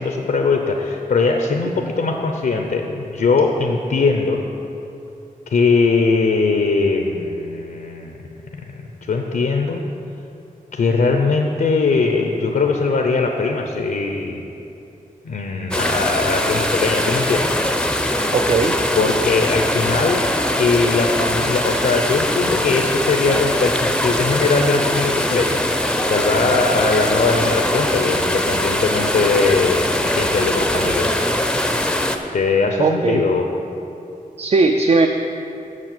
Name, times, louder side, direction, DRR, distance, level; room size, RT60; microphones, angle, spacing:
voice 1, 0.0-4.4 5.5-8.2 8.7-9.8 10.7-14.4 15.2-17.5 19.0-20.3 20.6-31.2 32.3-33.5, left 4 dB, 80° left, 3 dB, 0.6 m, -20 dB
sound 1, 15.7-32.2, left 1 dB, 5° left, 0.5 m, -21 dB
voice 2, 18.3-18.8 32.8-33.2 34.4-35.1, right 3 dB, 45° right, 5 dB, 0.4 m, -17 dB
7.5 x 6.1 x 7.5 m, 2.8 s
wide cardioid pair, 115°, 15 cm